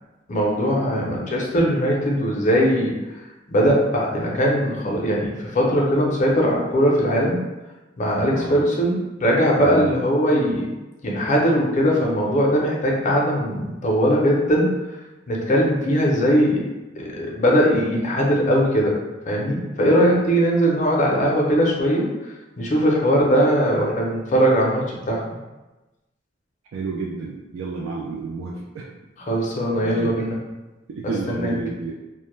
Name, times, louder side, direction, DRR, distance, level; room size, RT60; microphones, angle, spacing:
voice 1, 0.3-7.4 8.0-10.7 11.0-14.8 15.3-16.6 17.0-19.0 19.3-22.1 22.6-25.4 29.2-30.4 31.3-31.5, equal, 40° left, -2 dB, 0.5 m, -20 dB
voice 2, 0.9-1.3 8.3-8.6 9.6-9.9 26.7-28.9 29.8-30.2 30.9-31.9, right 4 dB, 75° right, -1 dB, 0.3 m, -31 dB
2.1 x 2.0 x 3.0 m, 1.1 s
head